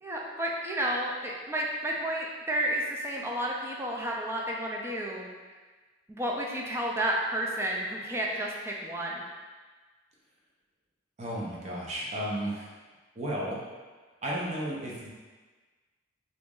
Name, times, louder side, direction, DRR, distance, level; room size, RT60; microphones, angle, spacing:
voice 1, 0.0-5.3 6.1-9.2, right 1 dB, 15° right, -2 dB, 0.4 m, -31 dB
voice 2, 11.2-12.7 13.2-13.7 14.2-15.1, right 1 dB, 35° right, -5 dB, 0.7 m, -33 dB
3.0 x 2.5 x 3.7 m, 1.3 s
head